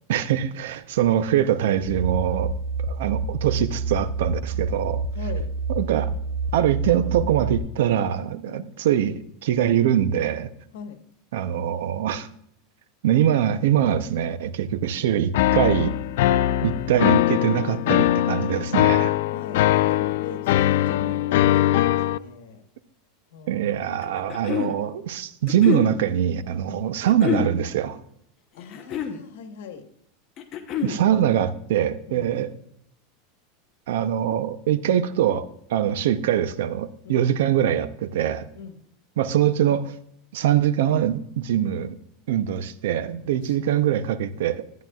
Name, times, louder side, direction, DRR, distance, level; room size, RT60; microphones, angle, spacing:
voice 1, 0.1-2.5 2.9-5.0 5.7-6.1 6.5-10.5 11.3-12.3 13.0-15.9 16.6-19.2 23.5-28.0 30.8-32.5 33.9-38.5 39.2-39.9 40.3-42.0 42.3-44.6, right 10 dB, 80° right, 13 dB, 0.6 m, -23 dB
sound 1, 1.8-7.6, right 4 dB, ahead, 0.5 m, -28 dB
voice 2, 5.1-5.5 8.4-8.7 10.7-11.0 19.3-22.6 23.3-23.9 26.7-26.8 28.5-29.9 32.1-32.3 37.0-37.2 38.5-38.8 43.1-43.8, left 6 dB, 90° left, 7 dB, 1.3 m, -41 dB
sound 2, 15.3-22.2, left 13 dB, 70° left, 0.3 m, -21 dB
sound 3, 24.0-24.8 25.5-25.9 27.1-27.5 28.6-29.2 30.4-31.0, left 8 dB, 30° left, 0.8 m, -27 dB
11.5 x 9.2 x 2.4 m, 0.72 s
supercardioid pair, 165°, 0 cm